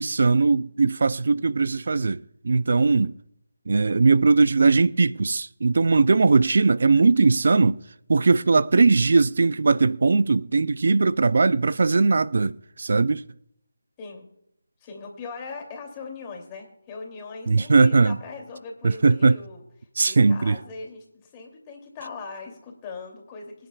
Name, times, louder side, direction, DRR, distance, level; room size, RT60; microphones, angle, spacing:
voice 1, 0.0-3.1 3.7-7.8 8.1-13.2 17.5-18.2 18.8-19.4 20.0-20.6, right 4 dB, 55° right, 0.4 m, -19 dB
voice 2, 14.8-19.6 20.0-23.7, left 4 dB, 20° left, 2.7 m, -40 dB
23.5 x 10.0 x 2.4 m
figure-of-eight pair, 165°, 0 cm